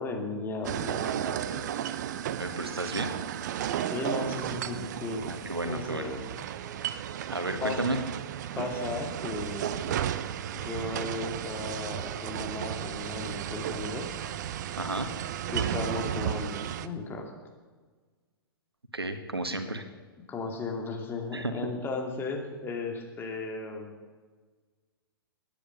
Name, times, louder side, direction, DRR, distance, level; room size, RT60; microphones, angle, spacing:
voice 1, 0.0-1.7 3.9-5.3 5.6-6.3 7.6-7.8 8.5-10.1 10.5-14.2 15.5-17.3 19.7-19.8 20.3-23.9, left 3 dB, 15° left, 2 dB, 2.7 m, -35 dB
sound 1, 0.6-16.9, right 10 dB, 50° right, 0.8 m, -34 dB
voice 2, 2.4-3.1 5.2-6.1 7.3-8.0 14.8-15.1 18.9-19.9 21.3-21.5, right 2 dB, 85° right, 8 dB, 1.6 m, -32 dB
19.0 x 10.0 x 6.8 m, 1.4 s
figure-of-eight pair, 115°, 13 cm